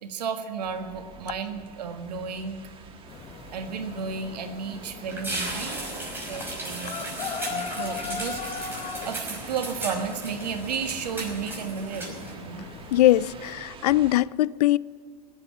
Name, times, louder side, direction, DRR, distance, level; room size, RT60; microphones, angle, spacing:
voice 1, 0.0-2.6 3.5-5.8 6.3-7.1 7.5-8.4 9.0-12.7, right 6 dB, 85° right, 1.7 m, -33 dB
sound 1, 0.6-14.2, right 5 dB, 25° right, 1.6 m, -46 dB
sound 2, 3.1-13.5, left 7 dB, 30° left, 1.4 m, -40 dB
sound 3, 5.0-12.3, right 2 dB, 10° right, 5.4 m, -36 dB
voice 2, 12.9-14.8, left 14 dB, 75° left, 0.4 m, -21 dB
17.5 x 8.1 x 9.6 m
hypercardioid pair, 120°, 20 cm